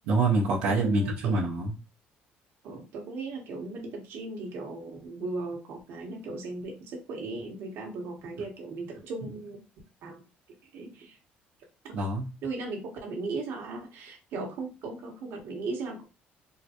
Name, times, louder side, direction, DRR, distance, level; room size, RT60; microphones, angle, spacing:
voice 1, 0.1-1.7 11.9-12.3, right 3 dB, 90° right, -6 dB, 0.8 m, -25 dB
voice 2, 0.6-1.3 2.6-9.6 10.0-10.2 10.6-11.2 11.8-11.9 12.4-16.0, right 3 dB, 70° right, 1 dB, 1.2 m, -37 dB
3.7 x 2.2 x 2.9 m, 0.30 s
cardioid pair, 95°, 4 cm